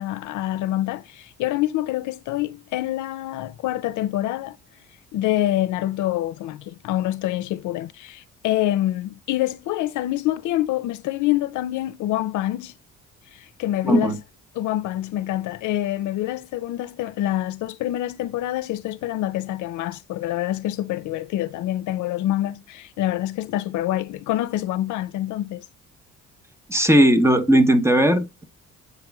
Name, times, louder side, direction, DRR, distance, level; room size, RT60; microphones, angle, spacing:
voice 1, 0.0-4.6 5.1-12.7 13.3-14.1 14.5-25.6, left 14 dB, 80° left, 0.5 m, -26 dB
voice 2, 13.8-14.2 26.7-28.4, right 1 dB, 10° right, 0.8 m, -17 dB
8.1 x 2.9 x 2.2 m
cardioid pair, 90°, 30 cm